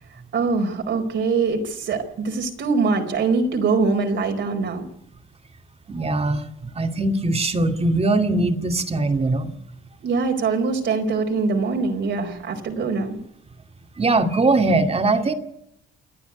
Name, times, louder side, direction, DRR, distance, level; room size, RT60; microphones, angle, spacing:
voice 1, 0.3-4.8 10.0-13.2, right 4 dB, 65° right, 3 dB, 4.5 m, -23 dB
voice 2, 5.9-6.4 6.7-9.5 14.0-15.3, right 2 dB, 30° right, 7 dB, 2.4 m, -21 dB
28.5 x 9.7 x 9.4 m, 0.78 s
cardioid pair, 90°, 20 cm